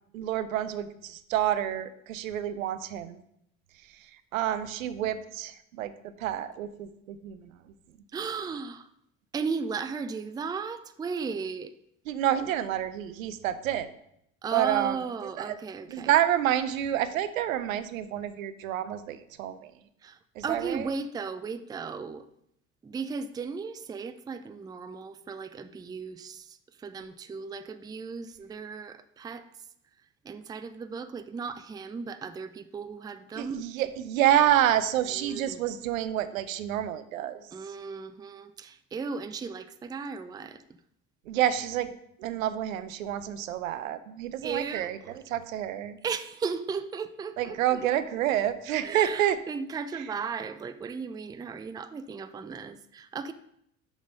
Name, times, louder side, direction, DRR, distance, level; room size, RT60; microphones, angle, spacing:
voice 1, 0.1-3.2 4.3-5.9 6.2-7.5 12.1-13.9 14.5-15.0 15.4-15.6 15.9-19.7 20.4-20.9 33.4-37.4 41.3-41.9 42.2-46.0 47.4-49.4, right 11 dB, 80° right, 13 dB, 0.6 m, -28 dB
voice 2, 8.1-8.9 9.3-11.7 14.4-16.1 20.0-22.2 22.8-26.5 26.8-29.5 30.2-33.6 35.1-35.6 37.5-40.6 44.4-45.1 46.0-47.9 48.8-53.3, right 5 dB, 10° right, 12 dB, 0.4 m, -36 dB
6.2 x 5.1 x 5.2 m, 0.75 s
hypercardioid pair, 60°, 40 cm